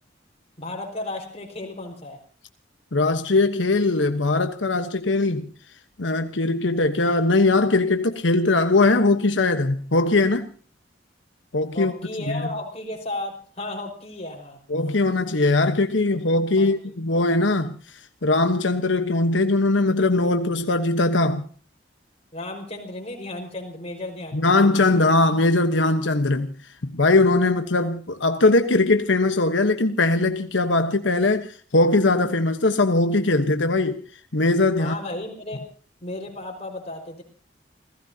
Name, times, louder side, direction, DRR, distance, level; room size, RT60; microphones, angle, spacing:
voice 1, 0.6-2.2 11.7-14.6 16.6-16.7 22.3-24.7 34.8-35.6 36.0-37.2, left 2 dB, 35° left, 5.2 m, -34 dB
voice 2, 2.9-5.5 6.0-10.5 11.5-11.9 12.3-12.4 14.7-17.7 18.2-21.5 24.3-26.5 26.8-34.0 34.3-34.9, left 2 dB, 90° left, 1.2 m, -20 dB
29.5 x 17.0 x 2.9 m
head